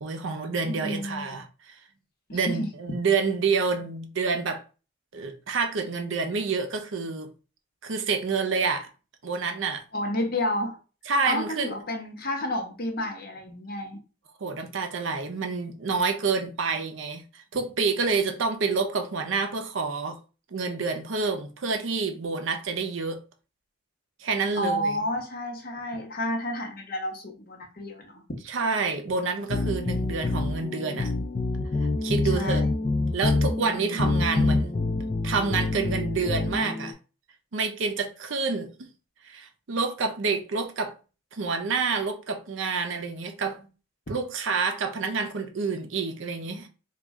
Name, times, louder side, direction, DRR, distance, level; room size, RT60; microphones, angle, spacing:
voice 1, 0.0-1.7 2.3-4.6 5.1-7.3 7.8-8.9 9.2-9.8 11.1-11.8 14.4-20.2 20.5-23.2 24.2-25.0 28.5-31.1 32.0-32.6 33.1-34.7 35.2-36.9 37.5-38.9 39.2-40.9 41.3-43.7 44.1-46.7, right 4 dB, 65° right, 0.6 m, -28 dB
voice 2, 0.7-1.4 2.3-2.7 9.9-10.7 11.3-14.0 24.5-28.2 32.3-32.7, left 1 dB, 45° left, 0.9 m, -30 dB
sound 1, 29.5-36.9, left 2 dB, 25° left, 0.3 m, -26 dB
3.1 x 2.3 x 3.5 m
head